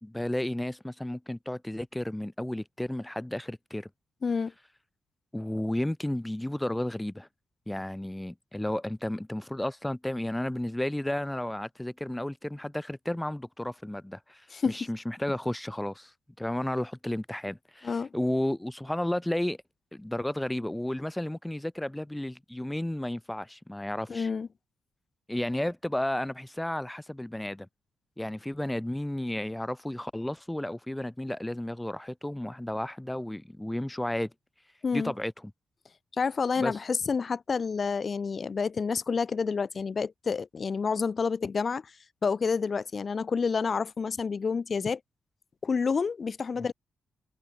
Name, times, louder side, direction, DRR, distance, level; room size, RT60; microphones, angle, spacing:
voice 1, 0.0-3.9 5.3-7.3 7.7-16.1 16.4-19.6 19.9-24.3 25.3-27.7 28.2-34.3 34.9-35.3 36.6-36.7 46.6-46.7, left 1 dB, 10° left, 1.6 m, -32 dB
voice 2, 24.1-24.5 34.8-35.1 36.2-41.9 42.2-45.0 45.6-46.7, left 5 dB, 50° left, 1.7 m, -29 dB
supercardioid pair, 55°, 0 cm